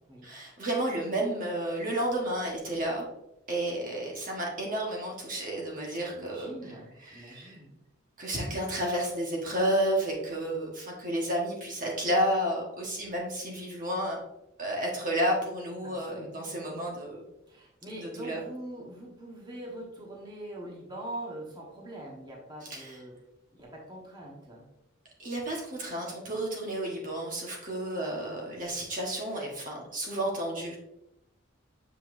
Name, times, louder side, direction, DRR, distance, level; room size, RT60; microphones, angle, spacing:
voice 1, 0.2-3.1 3.5-6.5 7.1-7.5 8.2-14.2 14.6-17.2 17.9-18.4 22.7-22.9 25.2-30.8, right 1 dB, 40° right, -2 dB, 1.3 m, -31 dB
voice 2, 5.9-7.7 15.8-16.8 17.5-23.2 23.5-24.7, right 1 dB, 20° right, -4 dB, 1.3 m, -43 dB
7.6 x 5.5 x 2.6 m, 0.90 s
head